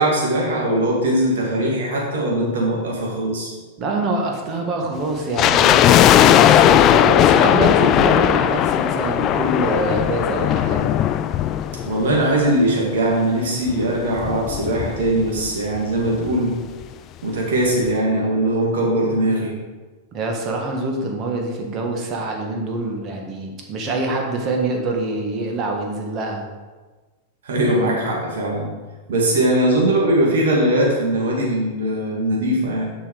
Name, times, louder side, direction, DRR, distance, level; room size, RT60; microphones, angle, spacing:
voice 1, 0.0-3.5 11.8-16.6 17.2-19.5 27.4-28.7 29.1-32.9, right 1 dB, 65° right, -2 dB, 2.5 m, -20 dB
voice 2, 3.8-10.9 20.1-26.4, right 2 dB, 35° right, 1 dB, 1.6 m, -25 dB
sound 1, 5.4-12.6 12.9-13.0 13.7-15.5 15.7-15.8 16.1-16.4 16.8-16.9, left 11 dB, 40° left, 0.4 m, -17 dB
7.2 x 5.6 x 5.1 m, 1.3 s
figure-of-eight pair, 95°, 0 cm